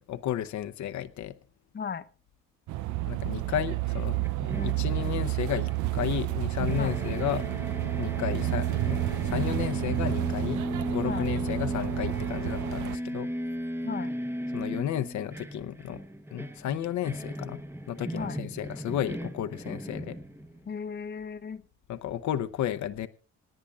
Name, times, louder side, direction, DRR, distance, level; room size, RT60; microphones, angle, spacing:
voice 1, 0.1-1.3 3.1-4.2 4.6-7.4 8.0-13.3 14.5-16.0 16.3-17.6 17.9-20.2 21.9-23.1, left 11 dB, 70° left, 10 dB, 0.8 m, -33 dB
voice 2, 1.7-2.1 4.5-4.7 6.8-7.0 11.0-11.3 13.8-14.1 18.1-18.4 20.7-21.6, left 6 dB, 35° left, 12 dB, 0.9 m, -36 dB
sound 1, 2.7-13.0, right 16 dB, 75° right, 0.6 m, -30 dB
sound 2, 4.2-6.4 6.7-20.7, equal, 10° right, 1.0 m, -36 dB
26.5 x 10.0 x 2.4 m, 0.35 s
cardioid pair, 90°, 30 cm